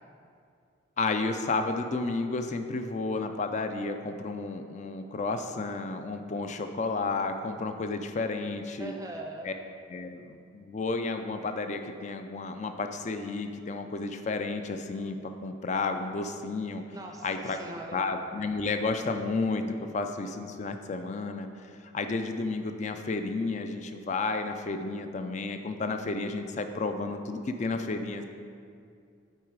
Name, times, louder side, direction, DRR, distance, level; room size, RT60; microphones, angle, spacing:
voice 1, 1.0-8.9 9.4-9.5 9.9-15.2 15.4-16.8 17.2-17.6 17.9-28.2, left 3 dB, 35° left, 7 dB, 0.3 m, -32 dB
voice 2, 8.8-9.5 16.9-18.0, right 1 dB, 15° right, 2 dB, 0.5 m, -41 dB
8.3 x 4.0 x 4.6 m, 2.3 s
head